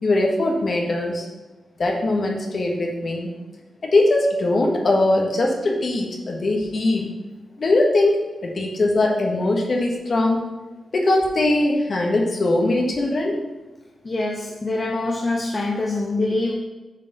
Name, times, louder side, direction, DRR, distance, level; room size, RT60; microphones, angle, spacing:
voice 1, 0.0-1.3 1.8-3.3 3.8-7.1 7.6-10.4 10.9-13.3, left 2 dB, 50° left, 0 dB, 1.5 m, -21 dB
voice 2, 14.0-16.5, left 2 dB, 30° left, -2 dB, 0.9 m, -24 dB
7.4 x 4.3 x 5.4 m, 1.1 s
wide cardioid pair, 105°, 0 cm